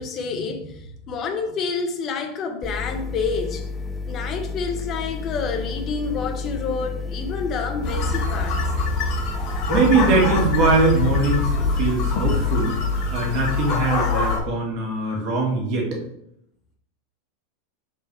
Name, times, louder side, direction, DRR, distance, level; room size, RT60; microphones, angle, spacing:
voice 1, 0.0-3.7 4.1-8.6, left 5 dB, 30° left, 1.1 m, -28 dB
sound 1, 2.6-13.6, left 3 dB, 10° left, 0.5 m, -31 dB
sound 2, 7.8-14.4, left 4 dB, 50° left, 3.0 m, -24 dB
voice 2, 9.7-12.7 13.1-16.0, right 3 dB, 45° right, 2.2 m, -22 dB
5.9 x 4.6 x 4.8 m
supercardioid pair, 145°, 0 cm